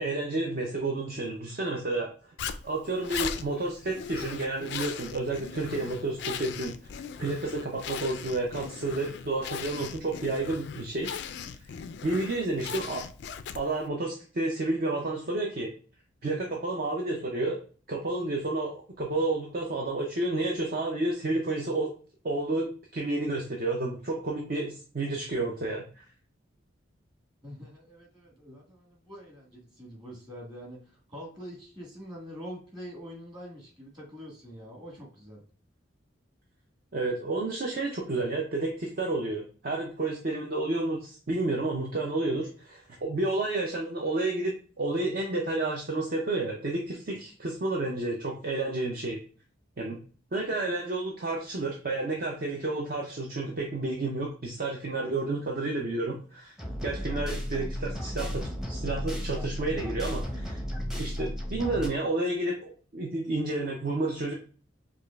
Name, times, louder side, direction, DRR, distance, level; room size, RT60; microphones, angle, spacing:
voice 1, 0.0-2.3 2.6-11.1 11.6-11.7 12.0-13.0 13.5-15.7 16.2-17.6 17.9-21.9 22.2-22.7 22.9-26.0 36.9-49.2 49.8-50.0 50.3-56.6 56.8-60.6 61.0-64.3, right 2 dB, 50° right, 0 dB, 0.6 m, -30 dB
Zipper (clothing), 2.4-13.9, left 7 dB, 60° left, 0.3 m, -39 dB
voice 2, 27.4-35.4, equal, 25° right, -2 dB, 1.5 m, -45 dB
sound 1, 56.6-61.9, equal, 5° right, 0.7 m, -34 dB
4.8 x 2.4 x 2.3 m, 0.40 s
head